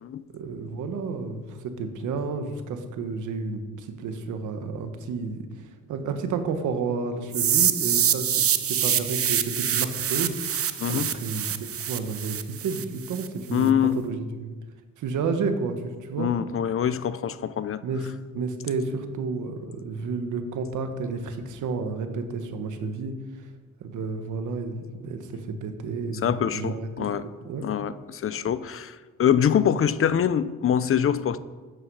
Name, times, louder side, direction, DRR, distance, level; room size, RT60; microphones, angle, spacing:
voice 1, 0.3-8.3 8.7-14.5 15.0-16.3 17.8-23.1 23.8-27.1 27.4-27.7, right 4 dB, 80° right, 7 dB, 1.6 m, -31 dB
sound 1, 7.3-13.3, right 9 dB, 50° right, 0.9 m, -25 dB
voice 2, 10.8-11.1 13.5-14.0 16.2-17.8 26.2-27.3 27.6-31.4, left 9 dB, 45° left, 15 dB, 0.7 m, -24 dB
13.5 x 10.0 x 4.9 m, 1.4 s
cardioid pair, 90°, 30 cm